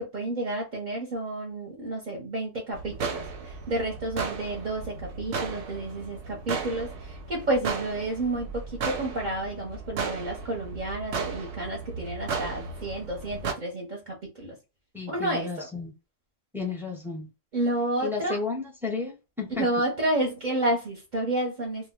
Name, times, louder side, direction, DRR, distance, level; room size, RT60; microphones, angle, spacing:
voice 1, 0.0-14.6 15.1-15.7 17.5-18.4 19.6-21.9, right 1 dB, 50° right, 0.7 m, -30 dB
sound 1, 2.7-13.5, right 5 dB, 90° right, 0.9 m, -35 dB
voice 2, 14.9-15.9 16.5-17.3 18.0-19.7, left 4 dB, 5° right, 0.4 m, -33 dB
2.3 x 2.1 x 3.5 m
omnidirectional pair, 1.1 m